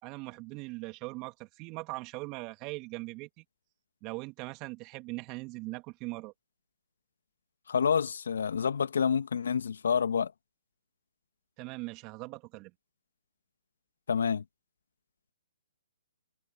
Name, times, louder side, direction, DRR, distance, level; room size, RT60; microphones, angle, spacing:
voice 1, 0.0-3.4 4.0-6.3 11.6-12.7, right 24 dB, 30° right, 2.4 m, -40 dB
voice 2, 7.7-10.3 14.1-14.4, left 6 dB, 65° left, 1.8 m, -28 dB
figure-of-eight pair, 135°, 0 cm